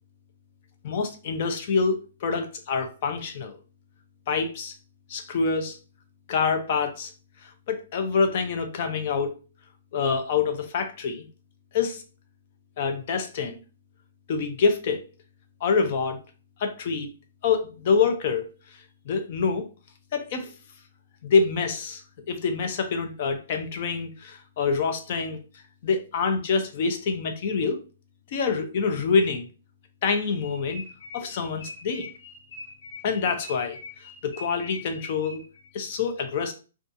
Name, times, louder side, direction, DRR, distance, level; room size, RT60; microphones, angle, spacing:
voice 1, 0.8-2.0 2.2-3.6 4.3-4.7 5.1-5.8 6.3-7.1 7.7-9.3 9.9-11.3 11.7-12.0 12.8-13.6 14.3-15.0 15.6-16.2 16.6-17.1 17.4-18.5 19.1-19.6 20.1-20.5 21.2-22.0 22.3-25.4 25.8-27.8 28.3-29.5 30.0-30.8 31.1-32.1 33.0-33.8 34.2-35.4 35.7-36.5, left 5 dB, 35° left, 6 dB, 0.4 m, -26 dB
sound 1, 30.4-35.7, left 3 dB, 85° left, 1.0 m, -44 dB
2.6 x 2.3 x 2.5 m, 0.33 s
hypercardioid pair, 170°, 0 cm